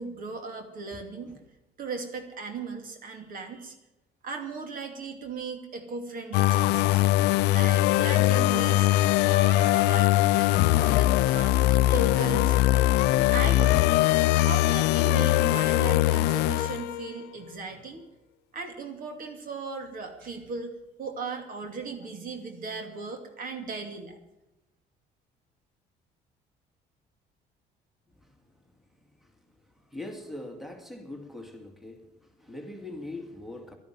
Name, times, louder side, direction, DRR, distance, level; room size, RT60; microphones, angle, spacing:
voice 1, 0.0-1.3 1.8-3.8 4.2-8.9 9.2-12.6 13.1-14.0 14.4-18.0 18.5-24.2, right 4 dB, 55° right, 2.7 m, -37 dB
sound 1, 6.3-17.2, left 16 dB, 90° left, 0.4 m, -22 dB
voice 2, 28.1-28.6 29.0-33.8, left 2 dB, ahead, 2.1 m, -42 dB
12.0 x 10.5 x 9.9 m
cardioid pair, 110°, 17 cm